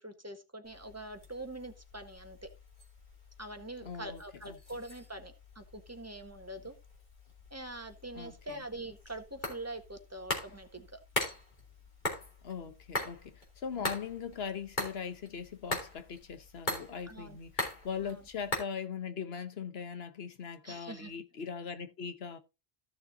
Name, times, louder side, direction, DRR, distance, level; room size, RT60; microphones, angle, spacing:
voice 1, 0.0-2.5 3.4-6.7 7.5-11.0 13.8-13.9 17.1-17.4 18.0-18.2 20.6-21.1, right 1 dB, 15° right, 1.4 m, -44 dB
sound 1, 0.6-18.6, left 1 dB, 50° left, 3.2 m, -42 dB
voice 2, 3.8-4.6 8.1-8.3 12.4-22.4, left 6 dB, 75° left, 1.2 m, -40 dB
14.5 x 6.7 x 2.7 m
omnidirectional pair, 1.0 m